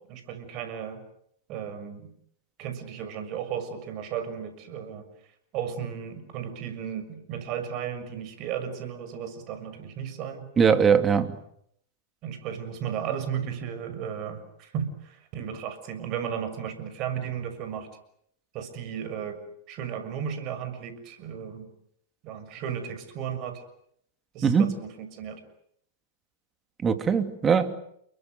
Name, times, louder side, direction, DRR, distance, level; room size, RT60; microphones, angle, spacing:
voice 1, 0.1-1.0 1.5-2.1 2.6-5.0 5.5-10.5 12.2-17.9 18.5-19.4 19.7-21.7 22.2-23.6 24.3-25.4, right 8 dB, 45° right, 10 dB, 6.6 m, -34 dB
voice 2, 10.6-11.3 24.4-24.7 26.8-27.7, right 6 dB, 20° right, 9 dB, 2.8 m, -21 dB
30.0 x 23.0 x 8.0 m, 0.71 s
hypercardioid pair, 105°, 0 cm